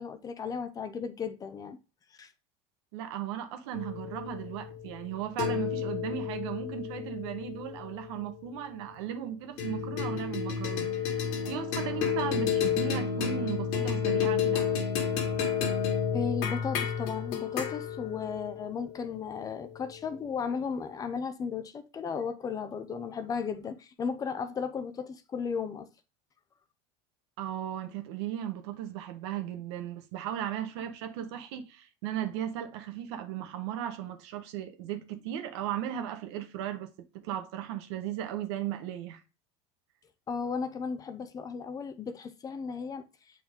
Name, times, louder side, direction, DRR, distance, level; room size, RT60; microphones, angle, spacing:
voice 1, 0.0-1.8 2.2-2.3 16.1-25.9 40.3-43.0, left 6 dB, 25° left, 0.8 m, -35 dB
voice 2, 2.9-14.7 27.4-36.9 37.2-39.2, right 10 dB, 75° right, 1.3 m, -36 dB
sound 1, 3.7-8.4 9.6-20.1, left 7 dB, 60° left, 2.1 m, -31 dB
7.6 x 4.5 x 3.7 m
supercardioid pair, 135°, 14 cm